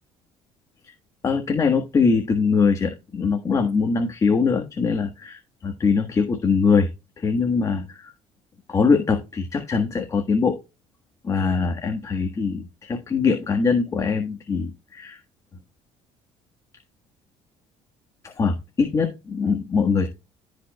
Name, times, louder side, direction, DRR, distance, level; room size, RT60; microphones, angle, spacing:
voice 1, 1.2-6.9 7.2-8.1 8.7-10.6 11.2-15.2 18.2-20.1, left 5 dB, 30° left, 5 dB, 1.4 m, -22 dB
14.5 x 5.1 x 2.3 m, 0.26 s
cardioid pair, 130°, 12 cm